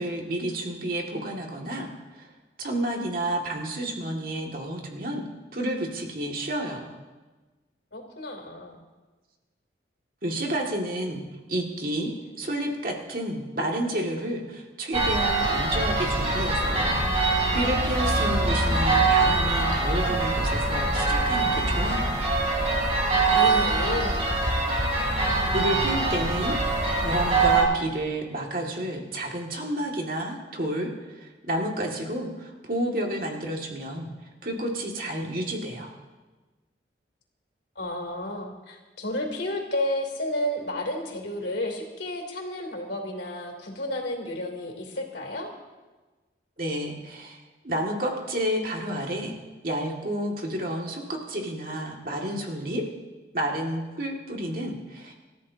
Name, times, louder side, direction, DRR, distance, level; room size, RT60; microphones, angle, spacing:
voice 1, 0.0-2.3 2.6-5.2 5.5-6.9 10.2-11.2 11.5-22.2 25.5-34.1 34.4-35.9 46.6-49.3 49.6-52.9 53.3-55.1, right 1 dB, 50° right, 0 dB, 2.2 m, -30 dB
voice 2, 7.9-8.7 23.3-24.2 37.7-45.5, left 1 dB, 80° left, 1 dB, 3.2 m, -31 dB
sound 1, 14.9-27.6, right 3 dB, 35° right, 3.2 m, -23 dB
27.5 x 13.5 x 2.8 m, 1.2 s
head